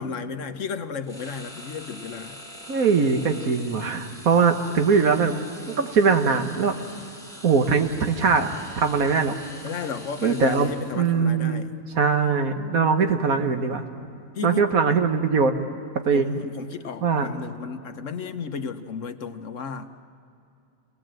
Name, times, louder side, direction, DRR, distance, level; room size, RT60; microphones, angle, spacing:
voice 1, 0.0-2.4 9.6-11.8 14.3-15.0 16.1-19.9, left 6 dB, 65° left, 8 dB, 1.3 m, -34 dB
sound 1, 1.0-11.2, equal, ahead, 2.4 m, -44 dB
voice 2, 2.7-5.3 5.7-6.7 7.4-8.5 8.8-9.3 10.2-11.6 11.9-13.8 14.4-15.5 16.0-16.4 17.0-17.3, right 5 dB, 85° right, 6 dB, 1.7 m, -21 dB
28.0 x 18.5 x 7.7 m, 2.6 s
omnidirectional pair, 1.4 m